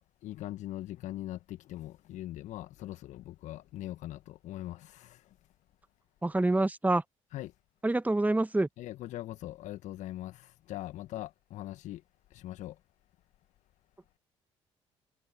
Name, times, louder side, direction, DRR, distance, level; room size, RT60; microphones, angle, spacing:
voice 1, 0.0-5.2 7.3-7.5 8.8-12.0 12.3-12.7, left 15 dB, 60° left, 1.3 m, -41 dB
voice 2, 6.2-7.0 7.8-8.7, right 2 dB, 10° right, 1.5 m, -26 dB
figure-of-eight pair, 50°, 14 cm